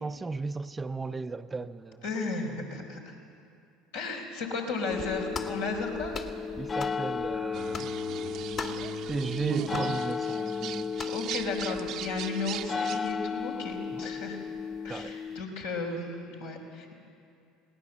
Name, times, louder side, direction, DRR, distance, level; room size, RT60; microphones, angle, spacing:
voice 1, 0.0-2.0 6.6-7.9 9.1-10.9 13.9-14.1 14.9-15.2, right 3 dB, 20° right, 0.6 m, -36 dB
voice 2, 2.0-3.1 3.9-6.3 11.1-14.4 14.8-16.9, left 3 dB, 80° left, 4.2 m, -34 dB
sound 1, 4.9-15.4, left 5 dB, 30° left, 0.5 m, -34 dB
sound 2, 5.3-5.6 6.1-6.4 6.8-7.0 7.7-8.0 8.6-8.9 9.7-9.9 11.0-11.2, left 5 dB, 45° left, 1.9 m, -38 dB
sound 3, 7.5-13.1, right 10 dB, 60° right, 0.8 m, -38 dB
20.5 x 18.5 x 7.4 m
hypercardioid pair, 70°, 0 cm